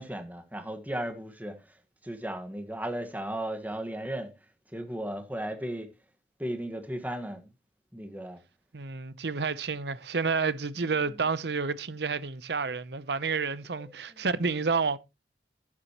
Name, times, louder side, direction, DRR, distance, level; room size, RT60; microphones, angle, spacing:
voice 1, 0.0-1.5 2.0-4.3 4.7-5.9 6.4-7.5 7.9-8.4 13.8-14.2, right 1 dB, 10° right, 1.5 m, -35 dB
voice 2, 8.7-15.0, right 4 dB, 70° right, 0.8 m, -30 dB
12.0 x 9.8 x 3.0 m
head